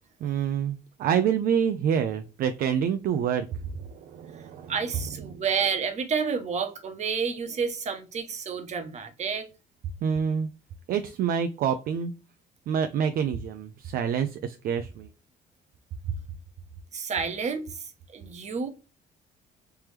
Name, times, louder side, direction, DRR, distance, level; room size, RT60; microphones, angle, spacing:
voice 1, 0.2-4.7 10.0-10.5 10.9-12.1 12.7-15.1, right 8 dB, 60° right, 0.4 m, -27 dB
voice 2, 4.7-9.5 16.9-18.7, right 6 dB, 40° right, 0.9 m, -30 dB
3.4 x 3.0 x 3.3 m
cardioid pair, 110°, 17 cm